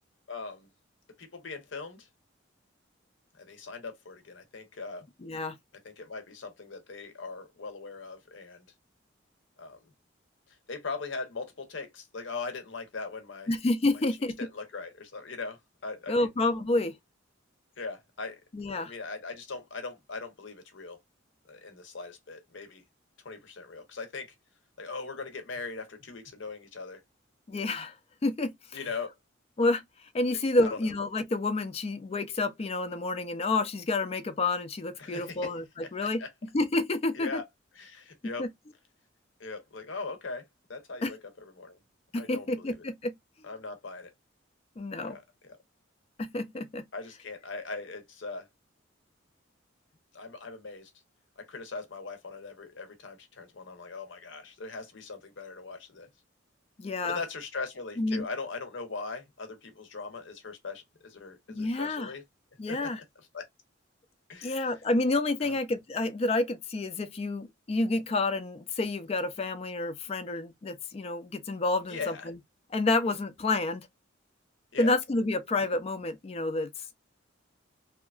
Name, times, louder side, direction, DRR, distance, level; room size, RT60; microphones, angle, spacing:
voice 1, 0.3-0.7 1.2-2.1 3.3-5.1 5.8-8.7 9.6-9.8 10.7-13.5 14.4-16.3 17.8-18.4 18.7-21.0 21.5-22.8 23.2-24.3 24.8-27.0 28.7-29.1 30.6-30.8 35.0-35.5 36.0-36.3 37.1-37.4 37.8-38.5 39.4-40.4 40.7-41.8 42.1-42.9 43.4-44.1 45.0-45.6 46.9-48.5 50.1-50.9 51.4-56.1 57.0-62.2 62.7-62.9 63.3-63.5 64.3-64.7 65.4-65.6 71.9-72.3 74.7-75.0, left 4 dB, 70° left, 0.8 m, -40 dB
voice 2, 5.2-5.6 13.5-14.4 16.1-17.0 18.5-18.9 27.5-28.0 28.2-28.8 29.6-29.8 30.1-36.2 36.5-37.4 38.4-38.5 41.0-41.1 42.1-43.1 44.8-45.2 46.2-46.8 56.8-57.2 58.0-58.2 61.5-62.1 62.6-63.0 64.4-72.4 72.7-73.9 74.8-76.8, left 2 dB, 30° left, 0.3 m, -29 dB
2.8 x 2.3 x 2.3 m
head